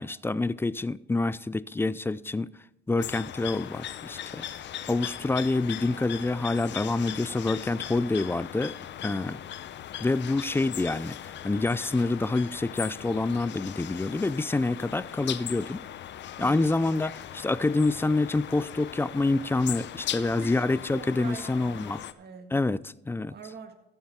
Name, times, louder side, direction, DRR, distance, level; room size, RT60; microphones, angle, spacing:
voice 1, 0.0-2.5 2.9-4.4 4.9-8.8 9.0-9.4 10.0-11.2 11.4-15.8 16.4-22.0 22.5-22.8 23.1-23.3, left 2 dB, 10° left, 0.4 m, -27 dB
sound 1, 3.0-22.1, left 11 dB, 65° left, 0.6 m, -39 dB
voice 2, 16.4-16.9 20.2-22.5 23.3-23.8, right 5 dB, 55° right, 1.7 m, -44 dB
14.5 x 7.3 x 4.4 m
cardioid pair, 90°, 20 cm